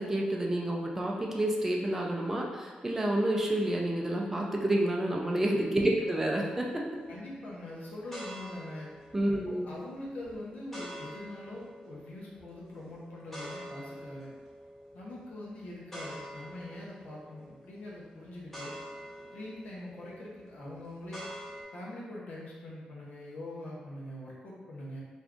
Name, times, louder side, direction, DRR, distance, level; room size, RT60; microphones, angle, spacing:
voice 1, 0.0-6.8 9.1-9.7, right 1 dB, 10° right, -1 dB, 0.4 m, -29 dB
sound 1, 6.0-21.6, equal, 10° left, 0.9 m, -48 dB
voice 2, 7.1-8.9 9.3-14.3 14.9-18.8 19.3-21.2 21.7-25.0, left 1 dB, 70° left, -5 dB, 0.8 m, -43 dB
2.5 x 2.3 x 3.5 m, 1.3 s
wide cardioid pair, 130°, 3 cm